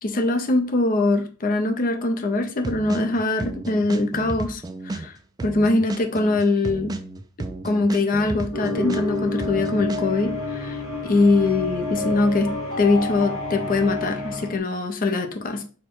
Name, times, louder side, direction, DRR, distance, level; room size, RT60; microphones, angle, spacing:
voice 1, 0.0-5.1 5.4-6.9 7.6-12.5 12.8-15.6, left 2 dB, 40° left, 5 dB, 0.6 m, -22 dB
sound 1, 2.6-5.1 5.4-9.1 9.4-10.0, right 2 dB, 20° right, 0.3 m, -32 dB
sound 2, 8.5-14.6, left 2 dB, 70° left, 0.9 m, -29 dB
4.3 x 2.2 x 4.6 m, 0.39 s
head